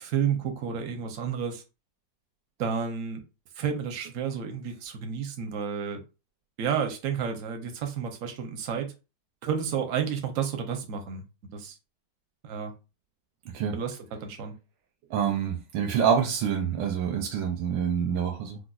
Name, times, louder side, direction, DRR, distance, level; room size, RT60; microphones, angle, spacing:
voice 1, 0.0-1.6 2.6-3.2 3.6-6.0 6.6-8.9 9.4-11.2 11.5-11.7 12.4-12.7 13.7-14.6, right 7 dB, 65° right, 0.8 m, -31 dB
voice 2, 15.1-18.6, right 7 dB, 80° right, 1.3 m, -26 dB
4.9 x 2.0 x 2.3 m
omnidirectional pair, 2.0 m